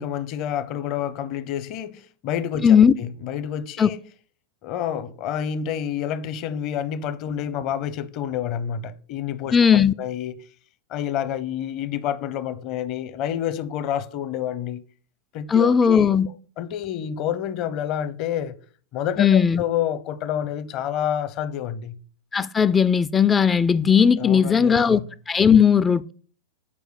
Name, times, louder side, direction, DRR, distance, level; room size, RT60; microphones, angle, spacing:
voice 1, 0.0-4.0 4.6-10.4 10.9-14.8 15.3-18.6 18.9-22.0 24.2-25.0, left 9 dB, 45° left, 0.7 m, -29 dB
voice 2, 2.6-2.9 3.8-3.9 9.5-9.9 15.5-16.3 19.2-19.6 22.3-25.0 25.3-26.1, left 7 dB, 20° left, 0.3 m, -17 dB
8.4 x 4.7 x 4.9 m
hypercardioid pair, 100°, 0 cm